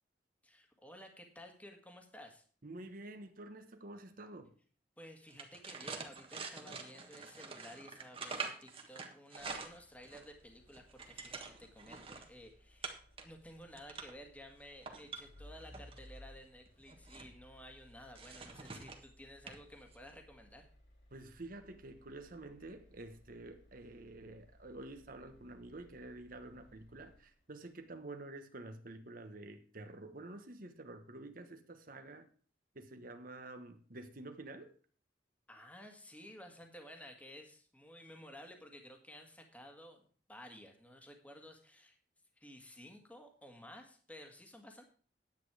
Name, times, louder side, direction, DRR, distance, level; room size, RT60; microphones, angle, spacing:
voice 1, 0.4-2.4 5.0-13.0 13.2-20.7 35.5-42.0 42.4-44.8, equal, 10° left, 1.8 m, -54 dB
voice 2, 2.6-4.5 21.1-32.3 32.7-34.7, right 2 dB, 50° right, 1.2 m, -49 dB
sound 1, 5.3-10.3 10.7-12.3 12.8-13.2 13.6-14.2 14.7-16.0 16.7-17.3 18.2-19.1 19.5-19.6 19.9-20.1, right 4 dB, 30° right, 1.5 m, -46 dB
sound 2, 9.4-27.6, left 1 dB, 65° left, 4.3 m, -61 dB
10.5 x 8.5 x 4.8 m
head